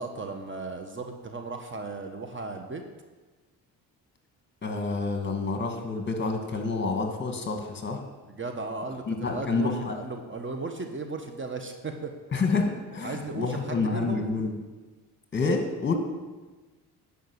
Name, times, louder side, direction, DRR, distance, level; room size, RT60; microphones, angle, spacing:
voice 1, 0.0-2.8 8.3-12.1 12.5-12.6 13.0-14.2, right 3 dB, 30° right, 5 dB, 1.3 m, -36 dB
voice 2, 4.6-8.0 9.1-10.0 12.3-14.6 15.3-15.9, left 4 dB, 30° left, 4 dB, 2.2 m, -28 dB
11.0 x 5.7 x 8.2 m, 1.3 s
supercardioid pair, 75°, 38 cm